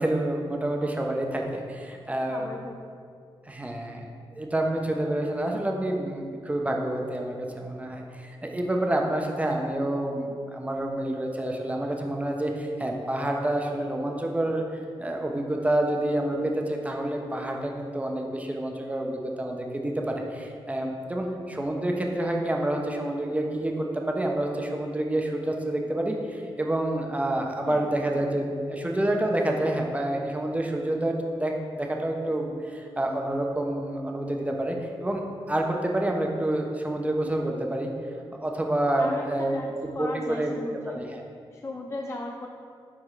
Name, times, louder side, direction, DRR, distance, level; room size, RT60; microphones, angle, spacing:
voice 1, 0.0-2.5 3.5-4.1 4.4-14.6 15.0-37.9 38.4-39.6 40.0-40.5 40.9-41.2, right 1 dB, 15° right, 1 dB, 0.8 m, -28 dB
voice 2, 2.3-2.7 27.6-27.9 39.0-41.1 41.5-42.5, left 2 dB, 30° left, 1 dB, 0.4 m, -36 dB
9.5 x 3.6 x 3.2 m, 2.3 s
cardioid pair, 80°, 10 cm